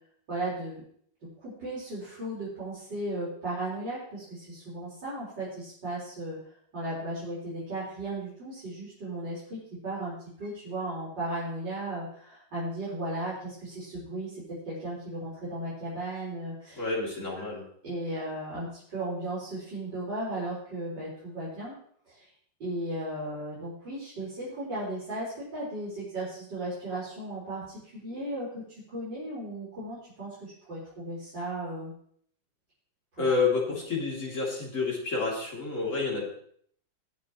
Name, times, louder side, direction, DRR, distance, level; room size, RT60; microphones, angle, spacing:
voice 1, 0.3-0.8 1.4-16.8 17.3-17.4 17.8-21.7 22.1-22.3 22.6-31.9 33.1-33.3, right 1 dB, 75° right, -9 dB, 5.3 m, -36 dB
voice 2, 16.7-17.6 33.2-36.2, left 4 dB, 40° left, -3 dB, 3.4 m, -29 dB
20.5 x 7.5 x 3.1 m, 0.63 s
omnidirectional pair, 2.0 m